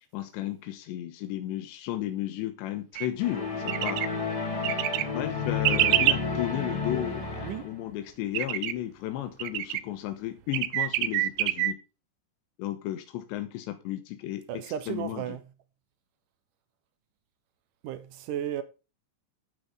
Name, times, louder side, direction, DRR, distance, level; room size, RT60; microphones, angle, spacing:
voice 1, 0.1-4.0 5.1-11.8 12.6-15.4, left 13 dB, 90° left, 3.4 m, -34 dB
sound 1, 3.0-3.1 3.7-4.1 4.6-5.0 5.7-6.1 8.3-8.7 9.4-9.8 10.5-11.7, right 15 dB, 90° right, 3.1 m, -25 dB
sound 2, 3.2-7.8, left 4 dB, 10° left, 2.1 m, -31 dB
voice 2, 14.5-15.4 17.8-18.6, right 10 dB, 70° right, 2.0 m, -34 dB
12.5 x 8.3 x 3.8 m
omnidirectional pair, 5.0 m